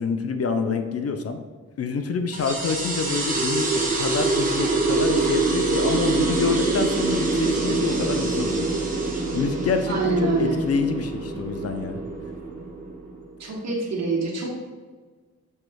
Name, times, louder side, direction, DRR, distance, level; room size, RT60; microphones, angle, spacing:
voice 1, 0.0-1.4 1.8-8.6 9.3-12.0, left 5 dB, 55° left, 6 dB, 0.4 m, -27 dB
sound 1, 2.3-13.4, right 3 dB, 30° right, 0.9 m, -25 dB
voice 2, 9.9-10.6 13.4-14.6, right 3 dB, 60° right, -1 dB, 1.0 m, -25 dB
6.3 x 3.0 x 2.3 m, 1.4 s
wide cardioid pair, 100°, 30 cm